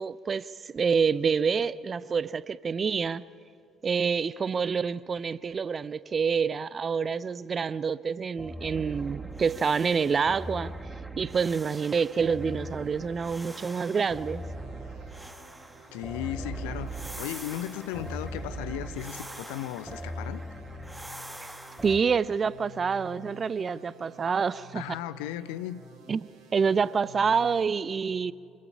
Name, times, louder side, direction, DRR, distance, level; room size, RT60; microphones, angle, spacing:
voice 1, 0.0-3.2 3.8-10.7 11.2-14.4 21.4-21.5 21.8-24.8 26.1-28.3, right 6 dB, 35° right, 19 dB, 0.5 m, -27 dB
sound 1, 8.4-22.0, right 1 dB, 10° right, 1.6 m, -40 dB
sound 2, 12.3-27.7, equal, 55° right, 3.3 m, -51 dB
voice 2, 15.9-20.4 24.7-25.8, left 13 dB, 70° left, 14 dB, 0.7 m, -36 dB
26.0 x 21.5 x 5.6 m, 2.4 s
figure-of-eight pair, 50°, 0 cm